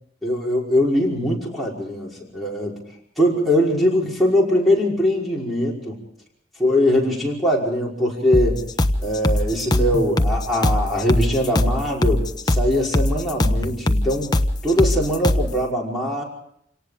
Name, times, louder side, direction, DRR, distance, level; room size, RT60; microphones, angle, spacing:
voice 1, 0.2-2.8 3.2-6.0 6.6-8.6 9.0-16.2, left 1 dB, ahead, -5 dB, 5.3 m, -21 dB
sound 1, 8.3-15.5, left 1 dB, 20° left, 0.9 m, -21 dB
28.0 x 18.5 x 5.0 m, 0.73 s
head